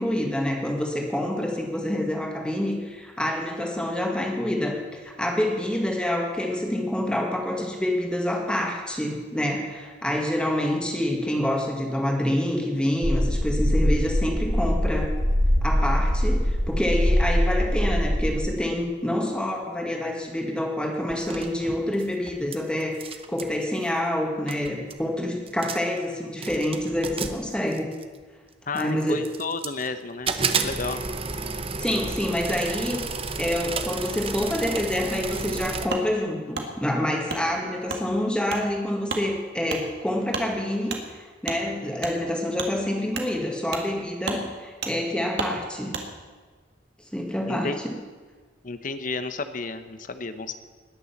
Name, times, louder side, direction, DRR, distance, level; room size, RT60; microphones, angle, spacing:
voice 1, 0.0-15.1 15.6-27.9 28.7-29.2 31.8-33.0 33.4-46.0 47.1-47.9, left 1 dB, 5° left, 1 dB, 2.0 m, -27 dB
sound 1, 13.0-18.4, equal, 90° right, 1.9 m, -22 dB
sound 2, 21.1-22.6 22.8-23.6 24.2-24.3 24.5-25.0 25.5-26.0 26.4-28.2 28.8-29.9 30.3-35.9, right 4 dB, 30° right, 0.8 m, -32 dB
voice 2, 28.7-31.1 47.5-47.8 48.6-50.5, left 3 dB, 45° left, 10 dB, 0.9 m, -32 dB
Wood, 35.9-36.1 36.5-36.7 37.3-37.4 37.9-38.0 38.5-38.6 39.1-39.2 39.7-39.8 40.3-40.5 40.9-41.0 41.4-41.6 42.0-42.1 42.6-42.7 43.1-43.3 43.7-43.9 44.2-44.4 44.8-44.9 45.4-45.5 45.9-46.1, right 4 dB, 60° right, 1.8 m, -31 dB
20.0 x 7.0 x 7.2 m, 1.4 s
head